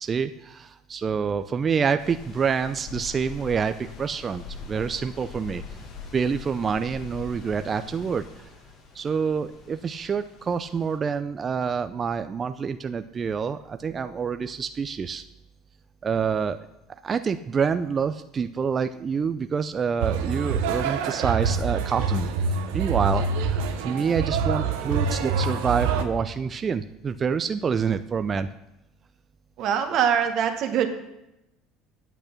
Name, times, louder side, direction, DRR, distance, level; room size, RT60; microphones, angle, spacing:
voice 1, 0.0-5.6 6.1-8.3 8.9-15.2 16.0-16.6 17.0-28.5, right 6 dB, 35° right, 9 dB, 0.5 m, -27 dB
sound 1, 2.0-11.0, left 4 dB, 55° left, 2.1 m, -43 dB
sound 2, 20.0-26.0, right 5 dB, 75° right, 1.0 m, -26 dB
voice 2, 29.6-30.9, right 8 dB, 55° right, 6 dB, 1.4 m, -23 dB
9.1 x 8.3 x 5.9 m, 0.89 s
hypercardioid pair, 70°, 0 cm